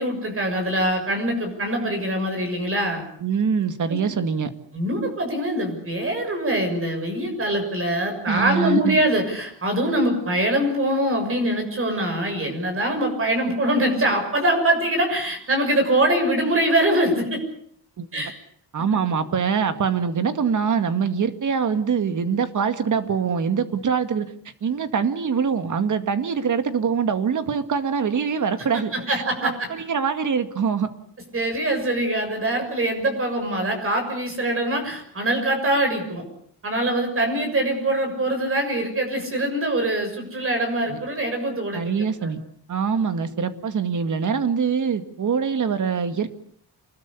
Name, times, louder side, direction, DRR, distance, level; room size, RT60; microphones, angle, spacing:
voice 1, 0.0-3.0 3.9-4.0 4.7-17.4 18.1-18.3 28.9-29.7 31.3-36.2 36.6-42.3, right 1 dB, 35° right, 4 dB, 6.8 m, -23 dB
voice 2, 3.2-4.5 8.3-9.0 18.0-18.3 18.7-24.3 24.6-30.9 40.9-41.0 41.7-42.4 42.7-46.3, right 6 dB, 50° right, 10 dB, 2.1 m, -24 dB
27.5 x 21.0 x 8.4 m, 0.62 s
wide cardioid pair, 180°, 40 cm